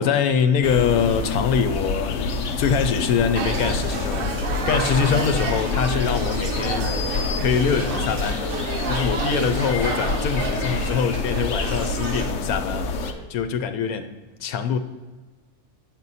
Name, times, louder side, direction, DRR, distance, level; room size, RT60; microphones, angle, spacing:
voice 1, 0.0-6.9 7.4-8.5 8.9-12.9 13.3-14.1 14.4-14.8, left 7 dB, 85° left, 9 dB, 1.1 m, -24 dB
sound 1, 0.6-13.1, left 3 dB, 65° left, 0.9 m, -27 dB
sound 2, 3.3-12.3, right 5 dB, 50° right, 0.7 m, -31 dB
sound 3, 4.0-13.1, equal, 35° right, 2.1 m, -42 dB
8.5 x 6.1 x 4.1 m, 1.3 s
omnidirectional pair, 1.5 m